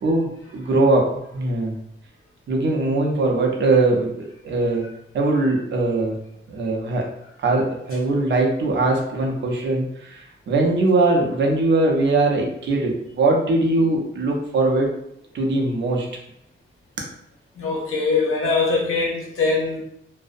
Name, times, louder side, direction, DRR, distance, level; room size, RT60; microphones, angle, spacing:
voice 1, 0.0-1.8 2.5-4.9 5.1-6.2 6.5-7.1 7.4-14.9 15.3-16.1, right 2 dB, 60° right, 0 dB, 0.5 m, -21 dB
voice 2, 17.6-19.8, left 4 dB, 90° left, -1 dB, 0.7 m, -22 dB
2.5 x 2.0 x 2.4 m, 0.75 s
wide cardioid pair, 170°, 21 cm